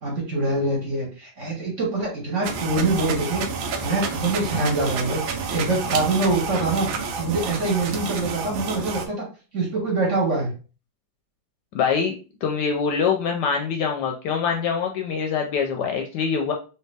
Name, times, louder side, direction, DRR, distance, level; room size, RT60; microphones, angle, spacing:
voice 1, 0.0-3.5 3.8-6.9 7.2-9.3 9.5-10.5, right 2 dB, 45° right, -2 dB, 1.4 m, -24 dB
sound 1, 2.4-9.1, right 5 dB, 85° right, 1.4 m, -29 dB
voice 2, 11.7-12.1 12.4-16.5, left 6 dB, 70° left, 3 dB, 1.1 m, -24 dB
3.3 x 2.8 x 3.3 m, 0.35 s
omnidirectional pair, 2.1 m